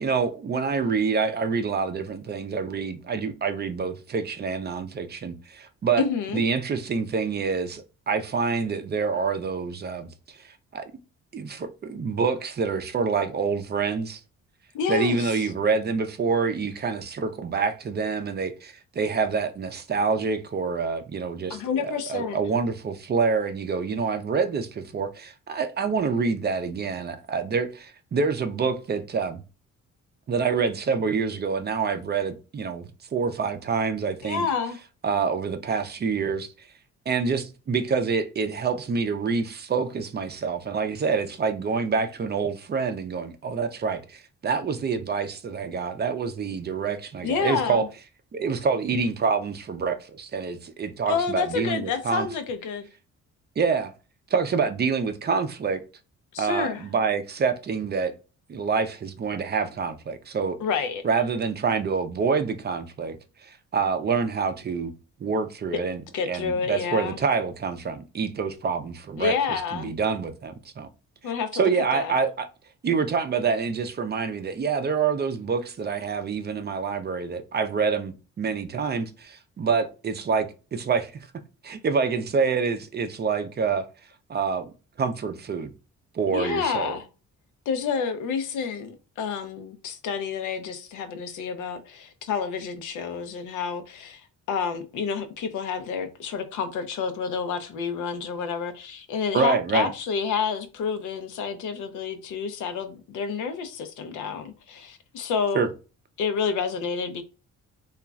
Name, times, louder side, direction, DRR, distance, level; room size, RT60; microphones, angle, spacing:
voice 1, 0.0-6.0 6.3-10.8 11.3-14.2 14.9-29.4 30.3-34.4 35.0-36.7 37.1-47.8 48.3-52.3 53.6-53.9 54.3-55.8 56.4-58.1 58.5-60.6 61.0-63.2 63.4-64.9 65.2-70.9 71.5-72.5 72.8-81.3 81.6-83.9 84.3-84.7 85.0-85.7 86.1-87.0 99.3-99.9 105.5-105.7, right 5 dB, 35° right, 0.5 m, -27 dB
voice 2, 6.0-6.4 14.7-15.5 21.5-22.4 34.2-34.8 47.2-47.9 51.1-52.9 56.3-56.9 60.6-61.0 66.1-67.2 69.2-70.0 71.2-72.2 86.3-87.1 87.7-94.2 94.5-105.6 106.2-107.2, left 6 dB, 80° left, 0.6 m, -29 dB
3.0 x 2.4 x 2.3 m
cardioid pair, 90°, 30 cm